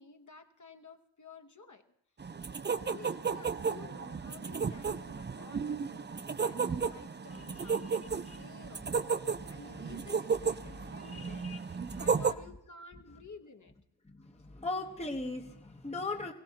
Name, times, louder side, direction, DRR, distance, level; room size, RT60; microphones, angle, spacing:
voice 1, 0.0-1.8 2.4-2.5 2.9-9.0 9.5-13.7, left 4 dB, 45° left, 4 dB, 1.1 m, -53 dB
sound 1, 2.2-12.3, right 5 dB, 25° right, 0.5 m, -34 dB
voice 2, 7.3-8.0 8.2-8.4 9.3-9.9 11.0-12.2 14.0-16.3, left 2 dB, 15° left, 3 dB, 1.0 m, -40 dB
22.5 x 16.0 x 2.9 m, 0.78 s
cardioid pair, 50°, 43 cm